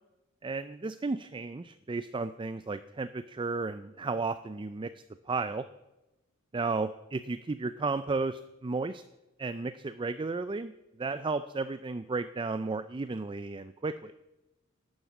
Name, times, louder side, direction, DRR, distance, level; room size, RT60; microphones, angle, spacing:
voice 1, 0.4-4.9 5.3-5.7 6.5-9.0 9.4-10.7 11.0-14.1, right 3 dB, 25° right, 12 dB, 0.4 m, -33 dB
12.0 x 9.5 x 8.2 m, 0.99 s
head